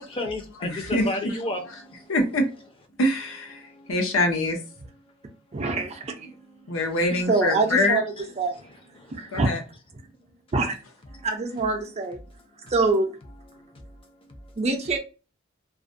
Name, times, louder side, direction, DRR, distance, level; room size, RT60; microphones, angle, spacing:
voice 1, 0.0-2.2 3.5-4.0 5.0-5.4 6.3-7.6 8.1-8.3 8.5-9.4 10.0-10.3 11.1-11.3 12.2-12.7 13.5-14.6, left 2 dB, 25° left, 0.5 m, -37 dB
voice 2, 0.6-1.3 2.1-2.5 3.0-3.6 3.9-4.6 6.7-8.0 9.3-9.6, left 1 dB, 75° left, 0.7 m, -24 dB
voice 3, 5.5-6.3 7.1-8.6 9.2-9.5 10.5-10.8 11.2-12.2 12.6-13.2 14.6-15.0, right 3 dB, 30° right, 0.4 m, -25 dB
2.4 x 2.1 x 2.5 m
head